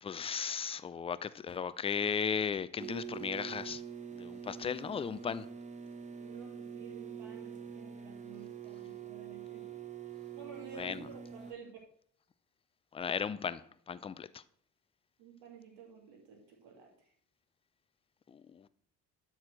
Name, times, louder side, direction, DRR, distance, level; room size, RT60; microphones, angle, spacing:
voice 1, 0.0-3.8 4.1-5.5 10.8-11.1 12.9-14.4 18.3-18.7, left 6 dB, 15° left, 0.4 m, -36 dB
sound 1, 2.8-11.5, right 8 dB, 15° right, 0.8 m, -45 dB
voice 2, 6.2-9.8 10.3-11.8 15.2-17.1, right 6 dB, 60° right, 2.6 m, -52 dB
11.5 x 4.4 x 6.2 m
figure-of-eight pair, 50°, 47 cm